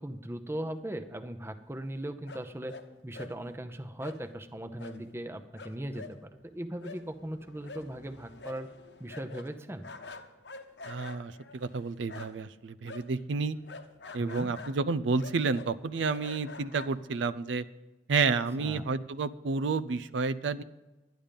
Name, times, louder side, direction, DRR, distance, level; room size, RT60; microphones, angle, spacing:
voice 1, 0.0-2.8 3.0-8.7 9.0-9.9 14.2-14.5 18.6-18.8, right 1 dB, 15° right, 9 dB, 0.7 m, -38 dB
sound 1, 2.3-2.9 3.1-3.4 4.0-4.2 4.8-5.0 5.3-5.4 5.6-12.5 12.8-17.4, left 3 dB, 70° left, 1.0 m, -47 dB
voice 2, 10.9-13.6 14.1-17.6 18.1-20.6, right 4 dB, 85° right, 14 dB, 0.5 m, -30 dB
11.5 x 10.5 x 5.2 m, 1.1 s
head